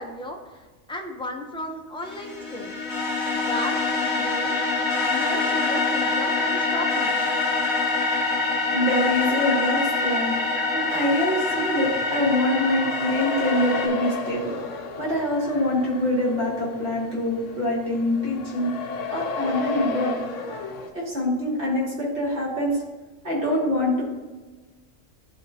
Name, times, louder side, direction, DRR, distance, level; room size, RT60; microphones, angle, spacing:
voice 1, 0.0-2.8 3.3-3.8 4.0-4.6 5.1-7.2, left 1 dB, 10° left, 2 dB, 0.3 m, -35 dB
sound 1, 2.0-13.9, left 3 dB, 25° left, 1.0 m, -25 dB
voice 2, 8.7-10.3 10.7-14.6 15.0-18.7 19.1-20.2 20.9-22.8 23.2-24.0, left 1 dB, 60° right, -5 dB, 2.3 m, -24 dB
sound 2, 11.5-20.9, left 4 dB, 80° left, 1.1 m, -34 dB
11.5 x 3.8 x 2.7 m, 1.2 s
omnidirectional pair, 1.3 m